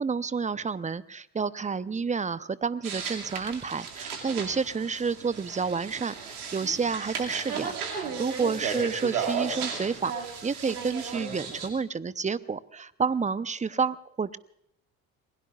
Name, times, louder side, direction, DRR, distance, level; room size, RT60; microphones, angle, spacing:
voice 1, 0.0-10.1 10.4-14.4, right 5 dB, 15° right, 16 dB, 0.7 m, -30 dB
sound 1, 2.8-11.7, right 6 dB, 85° right, 2.4 m, -35 dB
28.0 x 20.5 x 2.4 m, 0.76 s
hypercardioid pair, 60°, 44 cm